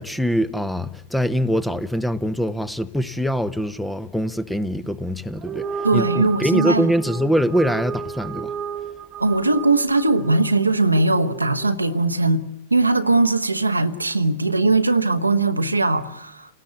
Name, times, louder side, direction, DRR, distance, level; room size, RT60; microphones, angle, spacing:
voice 1, 0.0-5.7 5.9-8.5, equal, 5° left, 1.0 m, -23 dB
sound 1, 5.3-11.9, right 8 dB, 30° right, 1.3 m, -32 dB
voice 2, 5.8-6.9 9.2-12.4 12.7-16.5, right 3 dB, 85° right, 1.2 m, -20 dB
29.5 x 19.0 x 8.6 m
figure-of-eight pair, 90°, 0 cm